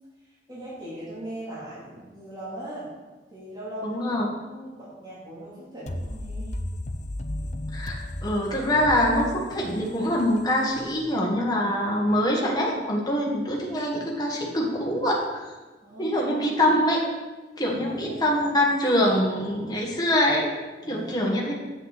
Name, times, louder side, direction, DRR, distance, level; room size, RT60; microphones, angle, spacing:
voice 1, 0.2-2.9 3.3-6.5 15.8-16.6 17.7-18.6 20.8-21.5, right 1 dB, 25° right, -9 dB, 2.9 m, -40 dB
voice 2, 3.8-4.3 7.7-15.4 16.0-17.0 17.6-20.5 20.9-21.5, equal, 20° left, -2 dB, 1.6 m, -24 dB
sound 1, 5.9-11.5, left 1 dB, 40° left, 0.5 m, -35 dB
8.0 x 7.7 x 4.1 m, 1.2 s
head